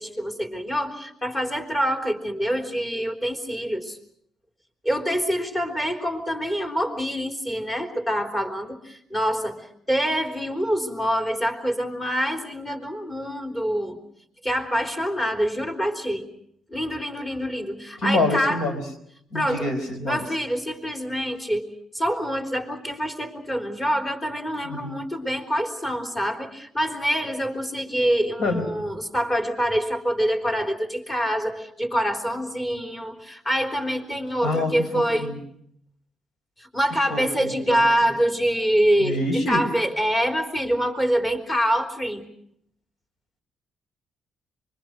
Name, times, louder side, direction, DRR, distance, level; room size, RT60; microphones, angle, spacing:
voice 1, 0.0-4.0 4.8-14.0 14.4-16.2 16.7-18.6 19.3-19.7 20.0-21.7 21.9-35.3 36.6-42.2, equal, 20° left, 4 dB, 3.8 m, -25 dB
voice 2, 18.0-18.8 19.3-20.2 24.6-25.0 28.4-28.6 34.4-35.4 37.1-37.8 39.0-39.6, left 2 dB, 75° left, 8 dB, 4.5 m, -26 dB
25.0 x 23.0 x 6.4 m, 0.70 s
cardioid pair, 90°, 0 cm